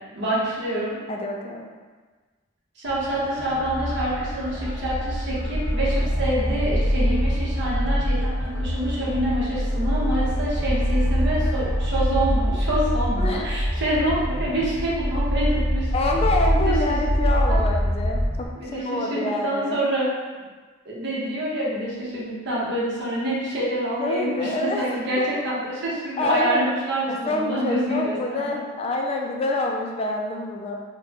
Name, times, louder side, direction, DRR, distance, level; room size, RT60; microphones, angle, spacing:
voice 1, 0.1-0.9 2.8-15.9 16.6-16.9 17.5-17.6 18.5-20.1 20.8-28.5, right 1 dB, 65° right, -6 dB, 0.9 m, -26 dB
voice 2, 1.1-1.7 13.2-13.5 15.9-19.8 24.0-25.0 26.2-26.6 27.1-30.7, left 2 dB, 30° left, 1 dB, 0.3 m, -26 dB
sound 1, 2.8-18.4, equal, 45° right, 1.2 m, -24 dB
3.8 x 2.2 x 2.9 m, 1.4 s
head